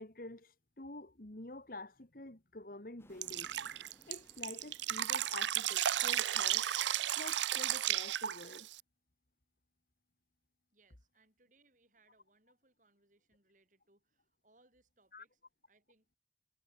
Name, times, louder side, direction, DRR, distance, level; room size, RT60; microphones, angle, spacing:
voice 1, 0.0-3.5 4.1-6.7 7.2-8.7 15.1-15.3, left 2 dB, 50° left, 1.9 m, -48 dB
sound 1, 3.0-7.3, equal, 15° left, 5.0 m, -67 dB
Drip, 3.2-8.8, right 12 dB, 85° right, 0.6 m, -34 dB
voice 2, 10.7-15.4 15.7-16.1, right 2 dB, 45° right, 6.6 m, -71 dB
head